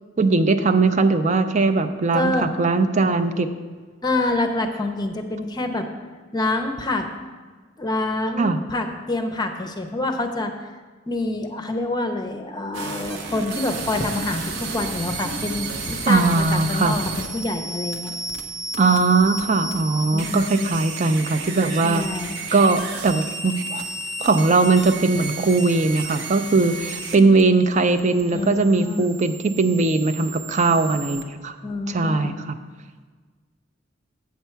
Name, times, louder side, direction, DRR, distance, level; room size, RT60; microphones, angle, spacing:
voice 1, 0.2-3.5 8.4-8.6 16.1-17.0 18.8-22.1 22.5-23.9 24.2-31.5 31.9-32.6, right 3 dB, 40° right, 10 dB, 0.5 m, -20 dB
voice 2, 2.1-2.5 4.0-5.9 6.3-7.1 7.8-10.5 11.1-14.4 14.7-18.1 20.1-20.7 21.8-22.4 28.3-29.2 31.6-32.3, left 2 dB, 20° left, 5 dB, 0.6 m, -26 dB
sound 1, 12.7-31.2, right 3 dB, 80° right, 0.8 m, -33 dB
8.3 x 6.6 x 4.5 m, 1.4 s
head